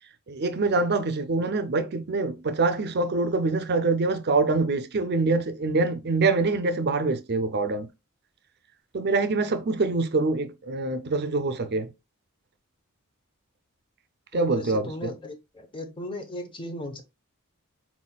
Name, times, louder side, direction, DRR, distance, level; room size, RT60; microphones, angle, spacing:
voice 1, 0.3-7.9 8.9-11.9 14.3-15.1, right 3 dB, 50° right, 0.6 m, -25 dB
voice 2, 14.3-17.0, left 1 dB, 25° left, 0.8 m, -37 dB
4.3 x 4.2 x 2.3 m
head